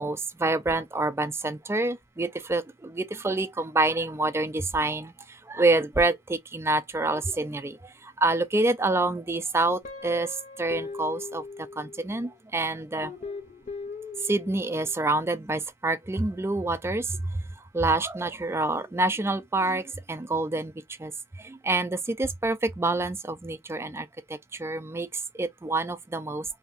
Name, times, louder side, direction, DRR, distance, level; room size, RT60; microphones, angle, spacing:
voice 1, 0.0-5.1 5.5-7.8 8.2-10.3 10.6-11.4 11.8-13.1 14.3-17.0 17.7-19.8 20.1-20.7 21.0-21.1 21.4-24.1 24.6-25.1 25.4-26.4, right 2 dB, 15° right, 0.3 m, -27 dB
Guitar, 9.8-12.3 13.0-14.9, left 4 dB, 40° left, 0.7 m, -39 dB
2.8 x 2.5 x 3.5 m
head